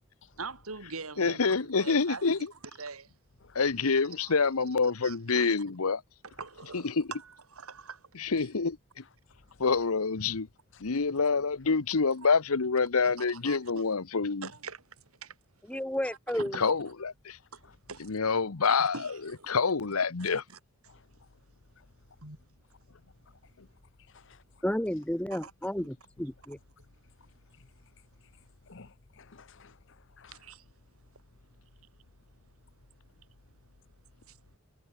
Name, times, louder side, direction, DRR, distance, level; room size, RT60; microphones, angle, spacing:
voice 1, 0.4-2.5 2.8-3.1 3.8-4.3 5.0-5.5 6.2-8.1 8.4-8.5 13.0-13.8 14.4-15.4 15.7-15.8 16.3-16.7 17.9-18.0 18.8-19.5 20.2-20.6 22.2-22.4 25.3-25.5 30.3-30.7 31.1-31.2 31.8-31.9 34.3-34.4, right 4 dB, 80° right, 3.2 m, -44 dB
voice 2, 1.2-2.4 3.5-6.0 6.7-7.1 8.2-8.8 9.6-10.5 10.8-14.5 16.6-17.1 18.0-18.9 19.5-20.4, left 4 dB, 80° left, 1.0 m, -27 dB
voice 3, 9.3-9.7 10.7-11.0 20.9-21.3 21.8-21.9 23.3-23.4 24.0-24.6 27.2-27.7 28.2-28.3 28.6-30.5, left 4 dB, 60° left, 1.0 m, -56 dB
voice 4, 15.7-16.6 24.6-26.6, equal, 5° left, 1.0 m, -32 dB
head